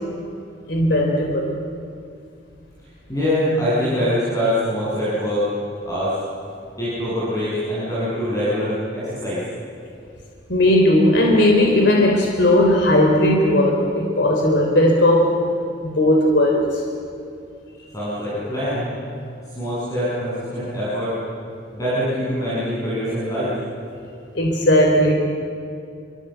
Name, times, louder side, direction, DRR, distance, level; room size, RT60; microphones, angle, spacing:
voice 1, 0.7-1.5 10.5-15.3 15.8-16.8 24.3-25.1, left 1 dB, 65° left, 0 dB, 3.3 m, -17 dB
voice 2, 3.1-5.4 5.8-6.1 6.8-9.4 17.9-18.9 19.5-21.1 21.7-23.5, equal, 20° left, -10 dB, 7.9 m, -23 dB
28.5 x 24.0 x 8.0 m, 2.5 s
head